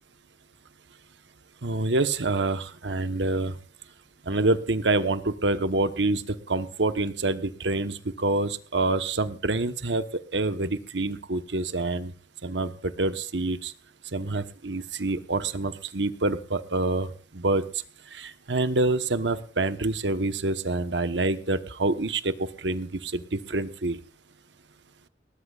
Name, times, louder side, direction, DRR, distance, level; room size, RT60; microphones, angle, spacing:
voice 1, 1.6-3.5 4.3-12.1 12.4-13.7 14.1-17.6 18.1-24.0, right 2 dB, 90° right, 10 dB, 1.2 m, -27 dB
20.5 x 18.5 x 2.5 m, 0.37 s
head